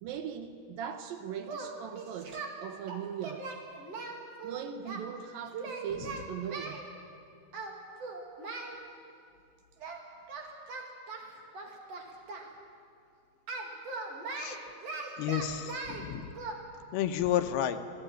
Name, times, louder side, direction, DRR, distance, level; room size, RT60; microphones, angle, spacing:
voice 1, 0.0-3.5 4.4-6.9, right 8 dB, 70° right, 8 dB, 2.4 m, -40 dB
Singing, 1.4-2.5 2.9-5.0 5.5-6.8 7.5-7.7 8.0-8.7 9.8-10.0 10.3-12.5 13.5-16.0 16.3-16.5, right 3 dB, 45° right, 2.9 m, -40 dB
voice 2, 15.2-16.3 16.9-17.8, left 10 dB, 75° left, 8 dB, 2.7 m, -31 dB
25.0 x 17.0 x 9.0 m, 2.5 s
omnidirectional pair, 4.7 m